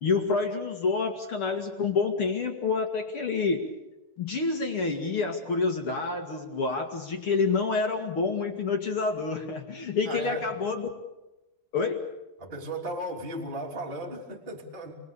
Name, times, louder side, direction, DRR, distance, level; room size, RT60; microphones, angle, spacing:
voice 1, 0.0-3.7 4.2-10.9 11.7-12.1, left 4 dB, 50° left, 4 dB, 1.6 m, -28 dB
voice 2, 10.1-10.4 12.4-14.9, right 1 dB, 15° right, 0 dB, 2.4 m, -35 dB
29.0 x 22.0 x 7.0 m, 1.0 s
omnidirectional pair, 5.4 m